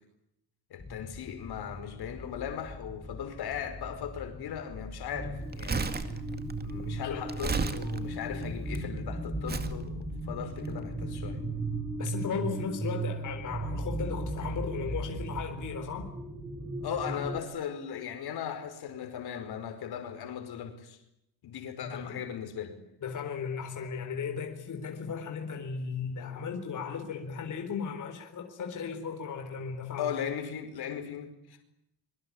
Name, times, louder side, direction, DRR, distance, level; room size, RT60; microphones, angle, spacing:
voice 1, 0.7-6.1 6.6-11.4 16.8-21.0 21.4-22.8 30.0-31.6, left 8 dB, 75° left, 4.9 m, -38 dB
sound 1, 0.8-12.0, left 2 dB, 10° left, 0.9 m, -46 dB
sound 2, 5.1-17.4, right 2 dB, 5° right, 4.5 m, -36 dB
Crumpling crinkling, 5.4-8.8 9.5-9.8 10.5-10.7, right 4 dB, 25° right, 2.2 m, -34 dB
voice 2, 12.0-16.1 21.8-22.2 23.0-30.2, left 6 dB, 50° left, 4.1 m, -36 dB
25.5 x 24.0 x 8.6 m
cardioid pair, 165°, 39 cm